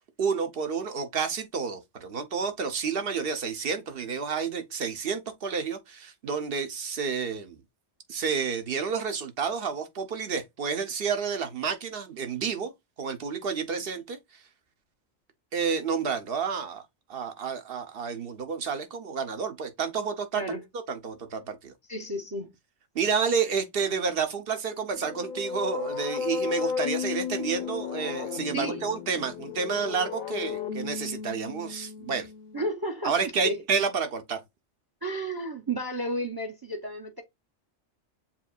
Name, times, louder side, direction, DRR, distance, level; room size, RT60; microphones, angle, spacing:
voice 1, 0.2-7.6 8.1-12.7 13.0-14.4 15.5-16.8 17.1-20.4 20.9-21.7 22.9-32.3 33.0-34.4, right 6 dB, 60° right, 1.0 m, -30 dB
voice 2, 21.9-22.5 28.5-28.8 32.5-33.6 35.0-37.2, right 1 dB, 25° right, 0.6 m, -32 dB
sound 1, 24.9-32.7, left 6 dB, 50° left, 0.7 m, -34 dB
7.2 x 2.7 x 2.3 m
omnidirectional pair, 1.2 m